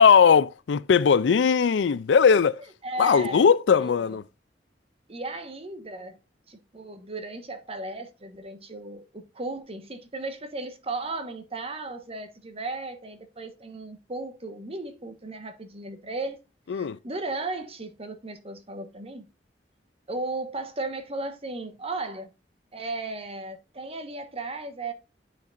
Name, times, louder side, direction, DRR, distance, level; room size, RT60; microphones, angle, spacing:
voice 1, 0.0-2.6 3.0-4.2 16.7-17.0, left 6 dB, 85° left, 0.4 m, -19 dB
voice 2, 2.8-4.1 5.1-6.2 6.5-16.4 16.7-19.2 20.1-22.3 22.7-24.9, right 2 dB, 35° right, 1.3 m, -35 dB
9.1 x 5.4 x 2.5 m
head